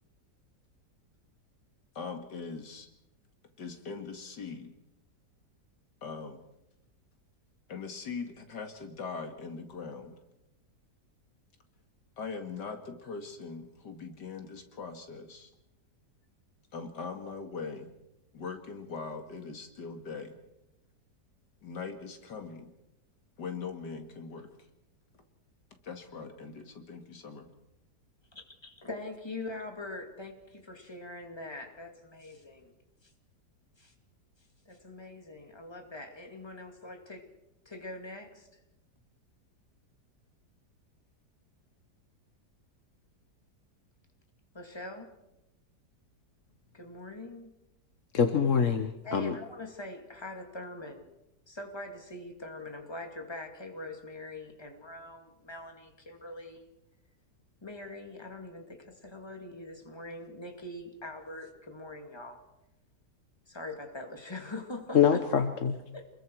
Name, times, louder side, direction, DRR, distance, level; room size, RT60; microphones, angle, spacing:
voice 1, 1.9-2.9 3.6-4.7 6.0-6.4 7.7-10.2 12.2-15.5 16.7-17.9 18.3-20.4 21.6-22.7 23.4-24.5 25.8-27.5, left 5 dB, 80° left, 6 dB, 2.6 m, -41 dB
voice 2, 28.3-32.7 33.0-33.1 33.8-33.9 34.7-37.3 37.7-38.5 44.5-45.1 46.7-47.5 49.0-51.1 51.5-56.7 57.6-62.4 63.5-65.3 65.9-66.1, left 2 dB, 15° left, 4 dB, 2.5 m, -43 dB
voice 3, 48.1-49.4 64.9-65.8, left 7 dB, 50° left, 7 dB, 1.4 m, -25 dB
28.0 x 21.5 x 4.7 m, 0.89 s
omnidirectional pair, 1.8 m